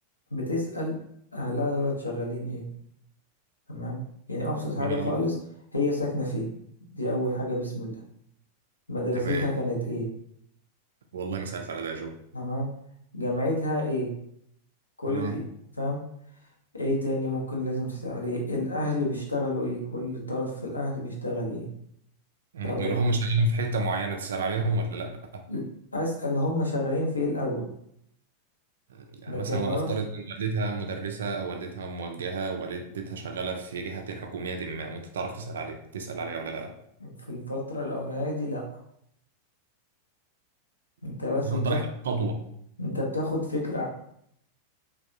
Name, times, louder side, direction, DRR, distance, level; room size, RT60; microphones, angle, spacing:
voice 1, 0.3-0.9 1.3-2.6 3.7-4.0 4.3-5.3 5.7-6.5 6.9-8.0 8.9-10.1 12.3-12.7 13.1-14.1 15.0-15.4 15.8-16.0 16.7-21.7 22.6-22.9 25.5-25.6 25.9-27.7 29.3-29.9 37.0-38.6 41.0-41.8 42.8-43.9, left 1 dB, 80° left, -1 dB, 0.7 m, -29 dB
voice 2, 4.8-5.1 9.1-9.5 11.1-12.2 15.1-15.4 22.5-25.4 28.9-36.8 41.4-42.4, right 3 dB, 65° right, 5 dB, 0.3 m, -31 dB
3.3 x 2.3 x 2.6 m, 0.71 s
figure-of-eight pair, 90°, 0 cm